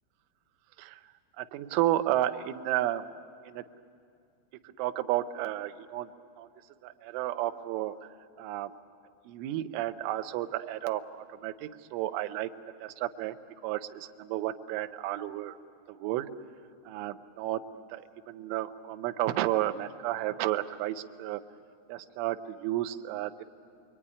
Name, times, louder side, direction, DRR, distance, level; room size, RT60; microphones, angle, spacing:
voice 1, 1.4-3.0 3.5-3.6 4.8-6.1 6.4-6.5 6.8-7.9 8.4-8.7 9.3-11.0 11.3-12.5 12.8-13.4 13.6-15.6 15.9-16.3 16.9-17.6 17.9-21.4 21.9-23.4, right 14 dB, 80° right, 9 dB, 3.2 m, -32 dB
27.5 x 22.5 x 9.8 m, 2.4 s
omnidirectional pair, 5.8 m